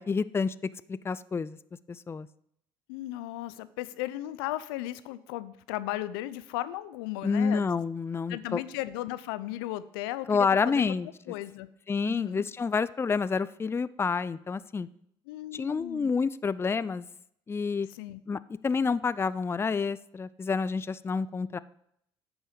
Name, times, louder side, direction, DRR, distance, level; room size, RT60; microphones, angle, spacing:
voice 1, 0.0-1.6 1.9-2.3 7.2-8.6 10.3-11.1 11.9-14.9 15.5-17.0 17.5-17.9 18.3-21.6, left 5 dB, 20° left, 17 dB, 0.4 m, -28 dB
voice 2, 2.9-7.7 8.3-11.0 11.3-11.7 12.0-12.4 15.3-16.2 17.9-18.2, left 15 dB, 80° left, 15 dB, 0.4 m, -36 dB
8.9 x 6.2 x 5.1 m, 0.73 s
hypercardioid pair, 60°, 12 cm